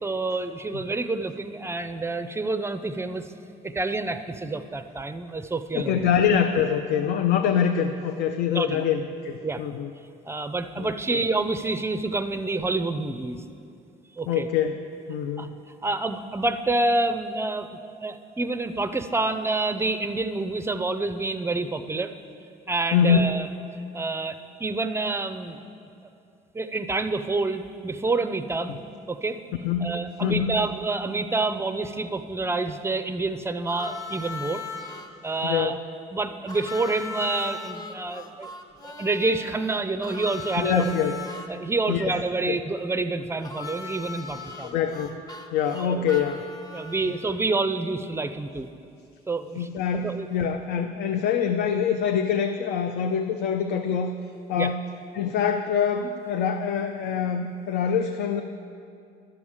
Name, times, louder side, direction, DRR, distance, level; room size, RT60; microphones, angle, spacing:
voice 1, 0.0-3.2 3.6-6.1 8.5-8.9 9.4-9.6 10.3-13.4 14.2-14.5 15.4-15.5 15.8-17.7 18.0-22.1 22.7-23.5 23.9-25.6 26.5-28.8 29.1-29.4 29.8-34.6 35.2-35.8 36.1-38.5 38.8-40.9 41.5-44.8 45.7-46.0 46.7-48.7 49.3-49.7 50.0-50.3 54.6-54.7, right 3 dB, 15° right, 10 dB, 0.4 m, -28 dB
voice 2, 5.7-9.9 10.8-11.2 14.3-14.8 15.1-15.6 22.9-23.2 29.6-30.6 35.4-35.8 40.6-41.2 41.9-42.2 42.5-42.6 44.6-45.2 45.5-46.4 49.6-54.1 54.5-54.8 55.1-58.4, left 7 dB, 75° left, 6 dB, 0.5 m, -25 dB
Harmonica, 33.7-35.1 36.5-41.5 43.4-47.4, left 3 dB, 20° left, 0.7 m, -38 dB
12.0 x 4.9 x 7.1 m, 2.5 s
cardioid pair, 110°, 17 cm